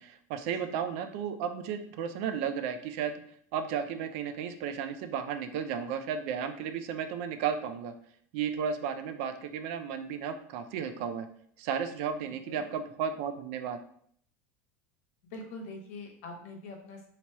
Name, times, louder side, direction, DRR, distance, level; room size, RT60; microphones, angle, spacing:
voice 1, 0.0-3.1 3.5-7.9 8.3-11.3 11.6-13.8, right 7 dB, 60° right, 8 dB, 0.4 m, -34 dB
voice 2, 15.3-17.1, left 2 dB, 70° left, 2 dB, 1.1 m, -43 dB
2.9 x 2.9 x 4.5 m, 0.63 s
supercardioid pair, 165°, 8 cm